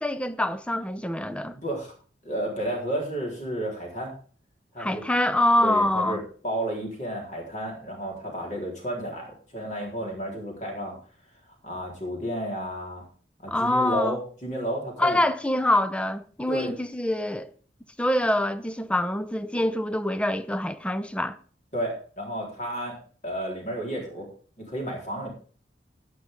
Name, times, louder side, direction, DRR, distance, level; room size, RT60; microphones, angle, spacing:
voice 1, 0.0-1.6 4.8-6.2 13.5-14.2 15.0-17.5 18.0-21.4, left 1 dB, 5° left, 0.5 m, -25 dB
voice 2, 1.5-1.9 2.2-4.1 4.7-5.0 5.6-11.0 11.6-13.0 13.4-15.2 16.5-16.7 21.7-23.0 23.2-24.3 24.6-25.3, equal, 45° left, 4.0 m, -32 dB
12.0 x 9.2 x 3.6 m
head